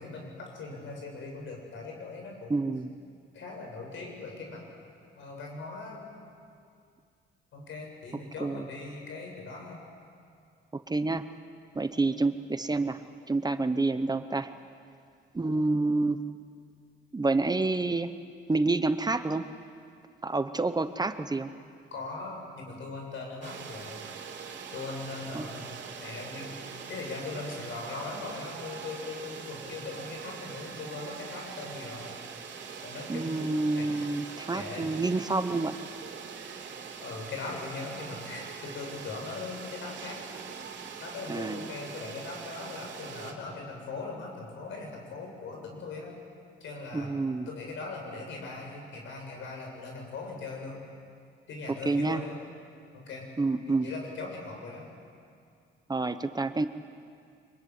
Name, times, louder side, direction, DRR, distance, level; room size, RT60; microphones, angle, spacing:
voice 1, 0.0-2.6 3.3-4.6 5.2-6.1 7.5-9.8 21.9-24.0 24.7-32.2 32.8-34.1 34.5-34.9 37.0-40.2 41.0-46.2 46.6-47.1 47.5-50.8 51.5-52.4 52.9-53.3 53.6-54.9, left 3 dB, 75° left, 1 dB, 7.4 m, -40 dB
voice 2, 2.5-2.9 8.4-8.7 10.7-11.2 11.7-13.0 13.3-14.5 15.3-16.2 17.1-18.1 18.5-19.5 20.2-21.5 25.3-25.5 33.1-35.8 41.3-41.7 46.9-47.5 51.7-52.2 53.4-53.9 55.9-56.7, right 3 dB, 20° right, 10 dB, 1.0 m, -28 dB
sound 1, 23.4-43.3, right 6 dB, 65° right, 3.2 m, -43 dB
24.5 x 22.5 x 9.6 m, 2.3 s
cardioid pair, 90°, 20 cm